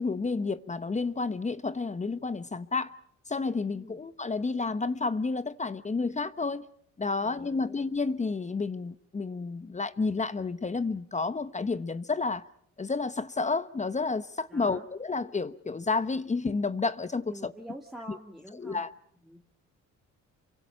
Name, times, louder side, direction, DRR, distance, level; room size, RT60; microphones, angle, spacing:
voice 1, 0.0-2.9 3.3-6.6 7.0-12.4 12.8-17.5 18.1-18.2 18.6-18.9, left 4 dB, 25° left, 1.0 m, -30 dB
voice 2, 7.2-7.8 14.5-14.9 17.3-18.8 19.2-19.4, equal, ahead, 2.7 m, -46 dB
28.0 x 24.0 x 5.6 m
cardioid pair, 90°, 30 cm